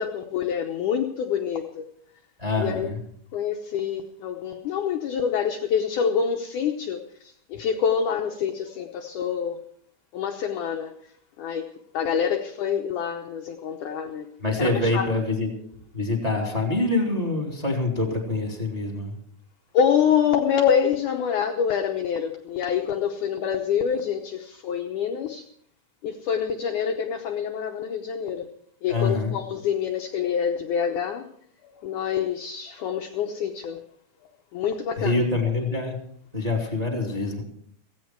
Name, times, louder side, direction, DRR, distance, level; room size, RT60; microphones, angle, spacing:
voice 1, 0.0-1.9 2.6-2.9 3.3-9.6 10.1-10.9 11.4-14.3 14.6-15.1 19.7-25.4 26.0-28.5 28.8-31.3 31.6-33.8 34.5-35.3, left 7 dB, 80° left, 4 dB, 1.7 m, -26 dB
voice 2, 2.4-3.0 14.4-15.5 15.9-19.1 28.9-29.3 35.0-36.0 36.3-37.4, left 2 dB, 10° right, 2 dB, 2.3 m, -25 dB
16.5 x 16.0 x 4.6 m, 0.65 s
omnidirectional pair, 4.8 m